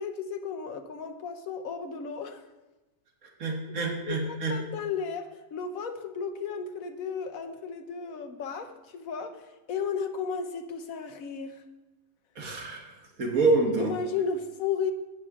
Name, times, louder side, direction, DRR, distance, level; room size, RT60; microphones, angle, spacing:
voice 1, 0.0-2.4 3.5-3.6 4.0-11.6 13.8-14.9, left 6 dB, 70° left, 1.3 m, -34 dB
voice 2, 3.4-4.5 12.4-12.9 13.2-13.9, right 3 dB, 70° right, 1.9 m, -26 dB
11.5 x 8.8 x 3.7 m
omnidirectional pair, 1.5 m